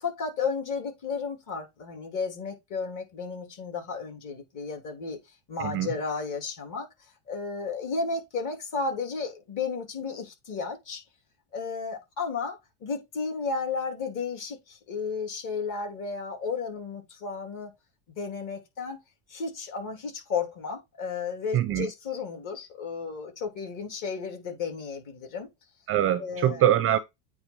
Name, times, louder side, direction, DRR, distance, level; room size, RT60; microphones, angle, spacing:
voice 1, 0.0-5.2 5.5-6.9 7.3-11.0 11.5-17.7 18.2-19.0 19.3-25.5 26.2-26.7, left 5 dB, 40° left, 3.1 m, -33 dB
voice 2, 21.5-21.9 25.9-27.0, right 11 dB, 30° right, 0.5 m, -23 dB
8.7 x 3.4 x 4.5 m
supercardioid pair, 140°, 46 cm